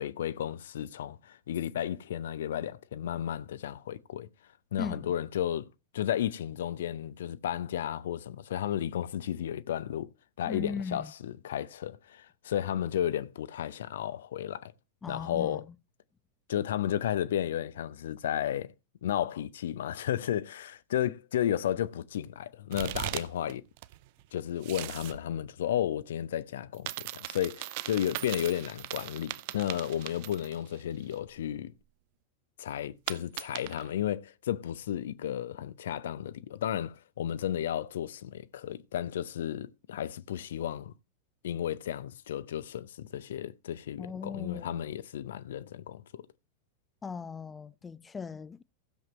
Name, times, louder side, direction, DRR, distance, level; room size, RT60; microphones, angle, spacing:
voice 1, 0.0-4.3 4.7-5.7 5.9-10.1 10.4-14.7 15.1-15.6 16.5-18.7 19.0-23.6 24.3-31.7 32.6-40.9 41.4-46.2, left 10 dB, 60° left, 0.6 m, -33 dB
voice 2, 4.8-5.1 10.4-11.1 15.0-15.8 44.0-44.8 47.0-48.6, left 5 dB, 15° left, 0.4 m, -38 dB
sound 1, 22.7-23.5 23.8-25.2 26.7-30.8 31.1-31.2 33.1-33.9, right 17 dB, 50° right, 0.5 m, -39 dB
15.5 x 7.4 x 3.1 m
figure-of-eight pair, 90°, 0 cm